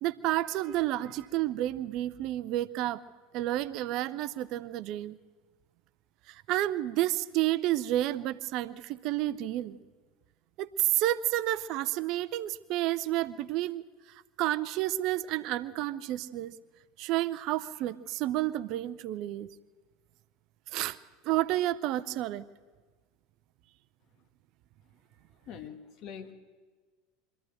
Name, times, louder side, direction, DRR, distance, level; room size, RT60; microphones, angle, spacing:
voice 1, 0.0-3.0 3.3-5.2 6.3-9.8 10.6-16.5 17.0-19.5 20.7-21.0 21.2-22.4, right 14 dB, 50° right, 17 dB, 0.6 m, -30 dB
voice 2, 25.4-26.3, left 8 dB, 45° left, 8 dB, 1.6 m, -43 dB
24.0 x 14.0 x 7.8 m, 1.4 s
figure-of-eight pair, 75°, 0 cm